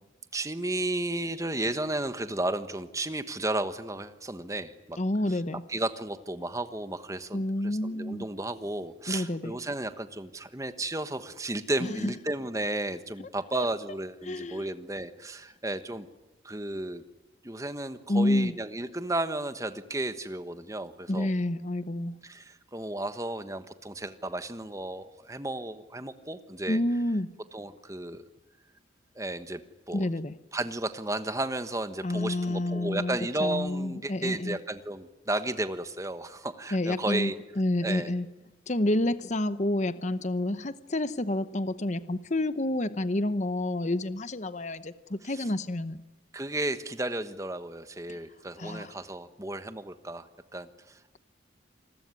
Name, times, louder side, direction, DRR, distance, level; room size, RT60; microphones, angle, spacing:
voice 1, 0.3-5.0 5.3-5.4 5.7-16.1 16.4-17.0 17.4-21.3 22.2-26.8 27.5-28.2 29.1-29.6 29.9-30.1 30.5-37.4 37.8-38.1 45.3-45.5 46.3-50.3 50.5-51.2, right 1 dB, 15° right, 11 dB, 1.2 m, -33 dB
voice 2, 5.0-5.6 7.3-8.2 9.1-9.5 11.8-12.1 13.5-13.7 14.2-14.7 18.1-18.5 21.1-22.2 26.7-27.3 29.9-30.3 32.0-34.6 36.7-38.3 38.7-46.0 48.1-48.2 48.6-49.0, left 1 dB, 40° left, 13 dB, 0.9 m, -29 dB
28.0 x 21.0 x 9.7 m, 1.0 s
head